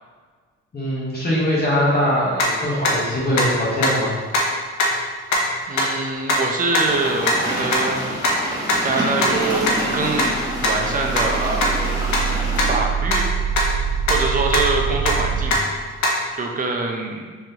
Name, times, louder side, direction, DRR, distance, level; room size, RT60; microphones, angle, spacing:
voice 1, 0.7-4.1, equal, 30° left, -7 dB, 1.1 m, -21 dB
sound 1, 2.4-2.5 2.8-2.9 3.4-3.5 3.8-3.9 4.3-4.4 4.8-4.9 5.3-5.4 5.8-5.9 6.3-6.4 6.7-6.8 7.2-7.3 7.7-7.8 8.2-8.3 8.7-8.8 9.2-9.3 9.7-9.8 10.2-10.3 10.6-10.7 11.2-11.3 11.6-11.7 12.1-12.2 12.6-12.7 13.1-13.2 13.6-13.7 14.1-14.2 14.5-14.6 15.0-15.1 15.5-15.6 16.0-16.1, left 2 dB, 70° left, 0.9 m, -19 dB
voice 2, 5.6-8.1 8.8-10.3 10.6-11.8 12.7-13.3 14.1-15.5 16.0-17.3, right 3 dB, 25° right, 1 dB, 0.6 m, -24 dB
sound 2, 6.9-12.8, right 1 dB, 10° right, 1.0 m, -27 dB
sound 3, 9.4-15.5, right 7 dB, 55° right, 1.4 m, -26 dB
3.6 x 3.3 x 2.8 m, 1.5 s
cardioid pair, 90°, 30 cm